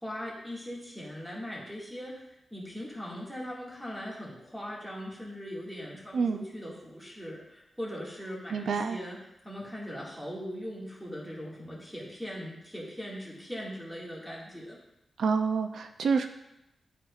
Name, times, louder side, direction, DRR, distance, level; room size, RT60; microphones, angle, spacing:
voice 1, 0.0-9.2 9.4-14.8, equal, ahead, -5 dB, 1.9 m, -40 dB
voice 2, 6.1-6.5 8.5-9.0 15.2-16.3, right 5 dB, 80° right, 7 dB, 0.4 m, -27 dB
11.5 x 4.4 x 2.4 m, 0.87 s
wide cardioid pair, 130°, 0 cm